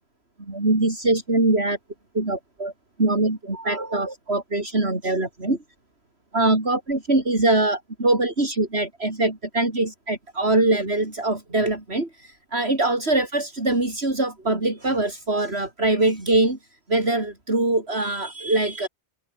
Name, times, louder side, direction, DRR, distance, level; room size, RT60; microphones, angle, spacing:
voice 1, 0.5-1.8 2.1-2.7 3.0-5.6 6.3-16.6 16.9-18.9, right 2 dB, 60° right, 5.0 m, -23 dB
omnidirectional pair, 1.2 m